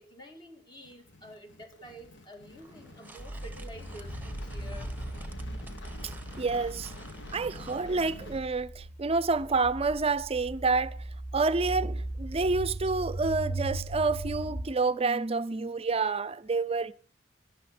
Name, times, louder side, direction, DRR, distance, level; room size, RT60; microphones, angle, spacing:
voice 1, 0.0-4.9 16.5-16.6, equal, 25° left, 2.0 m, -49 dB
sound 1, 0.8-8.4, left 2 dB, 70° left, 1.8 m, -48 dB
sound 2, 2.6-7.8, right 2 dB, 10° right, 1.2 m, -52 dB
sound 3, 3.2-14.6, right 1 dB, 40° left, 1.5 m, -38 dB
voice 2, 6.0-6.9 7.3-11.1 11.3-16.9, right 3 dB, 30° right, 0.5 m, -28 dB
13.0 x 11.0 x 6.0 m
head